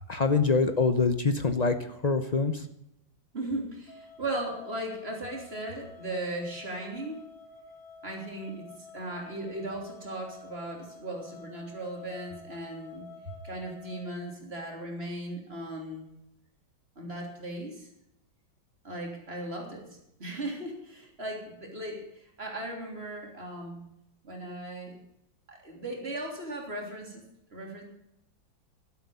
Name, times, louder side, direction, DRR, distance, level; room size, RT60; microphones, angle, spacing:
voice 1, 0.1-2.6, left 4 dB, 55° left, 9 dB, 0.4 m, -25 dB
voice 2, 3.3-7.2 8.0-13.1 13.4-16.1 17.0-17.9 18.8-23.8 24.2-25.0 25.5-27.2 27.5-27.8, right 1 dB, 30° right, 0 dB, 3.5 m, -37 dB
sound 1, 3.9-14.1, left 5 dB, 85° left, 4.5 m, -50 dB
12.0 x 12.0 x 6.9 m, 0.80 s
omnidirectional pair, 2.1 m